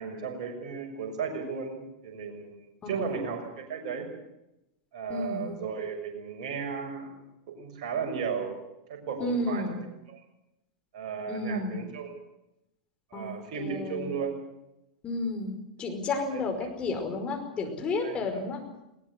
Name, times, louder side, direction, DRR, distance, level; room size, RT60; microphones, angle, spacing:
voice 1, 0.0-4.1 4.9-7.1 7.5-8.6 8.9-9.8 10.1-10.2 10.9-12.1 13.1-14.3 16.3-16.4 18.0-18.4, right 6 dB, 50° right, 3 dB, 6.4 m, -35 dB
voice 2, 5.1-5.6 9.2-9.8 11.3-11.8 13.1-14.1 15.0-18.6, left 2 dB, 25° left, 4 dB, 5.0 m, -32 dB
20.0 x 20.0 x 8.1 m, 0.89 s
figure-of-eight pair, 95°, 4 cm